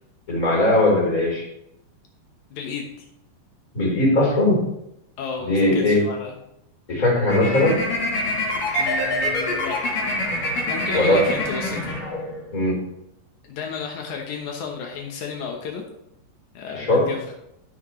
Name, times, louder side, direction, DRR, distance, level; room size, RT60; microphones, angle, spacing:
voice 1, 0.3-1.5 3.7-4.6 5.5-6.0 6.9-7.8 10.9-11.2 12.5-12.8 16.7-17.0, left 1 dB, 20° left, -3 dB, 3.8 m, -19 dB
voice 2, 2.5-3.1 5.2-6.3 8.8-9.8 10.6-11.9 13.5-15.8 16.5-17.3, left 6 dB, 85° left, 1 dB, 1.6 m, -32 dB
sound 1, 7.3-12.5, left 1 dB, 50° left, 4.2 m, -25 dB
17.5 x 6.2 x 3.2 m, 0.81 s
omnidirectional pair, 5.1 m